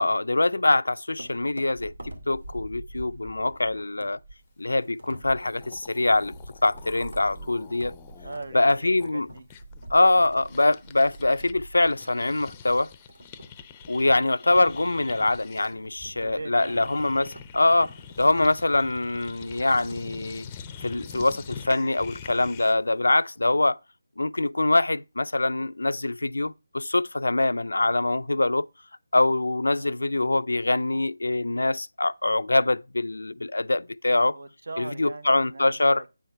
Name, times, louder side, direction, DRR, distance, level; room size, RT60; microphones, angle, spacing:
voice 1, 0.0-4.2 4.6-6.3 6.6-7.9 8.5-9.3 9.9-12.9 13.9-20.5 20.8-23.8 24.2-28.7 29.1-34.4 34.8-36.0, left 2 dB, 85° left, 0.4 m, -24 dB
sound 1, 1.2-20.2, right 1 dB, 85° right, 2.3 m, -46 dB
sound 2, 5.1-5.2 5.3-11.5 11.8-22.9, left 7 dB, 20° left, 0.5 m, -45 dB
voice 2, 8.2-9.5 16.1-16.9 29.6-30.0 34.3-36.1, right 2 dB, 70° right, 1.0 m, -41 dB
9.1 x 4.5 x 5.4 m
figure-of-eight pair, 160°, 0 cm